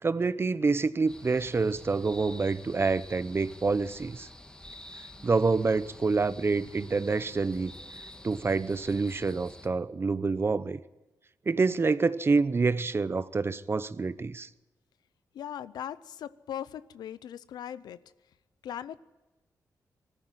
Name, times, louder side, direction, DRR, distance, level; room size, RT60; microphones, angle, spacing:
voice 1, 0.0-4.3 5.2-7.7 8.2-10.8 11.5-14.5, right 4 dB, 35° right, 16 dB, 0.8 m, -27 dB
sound 1, 1.1-9.7, left 1 dB, 10° left, 2.2 m, -49 dB
voice 2, 15.3-18.0 18.6-19.0, left 10 dB, 90° left, 16 dB, 0.6 m, -39 dB
20.0 x 14.0 x 9.2 m, 1.1 s
cardioid pair, 75°, 7 cm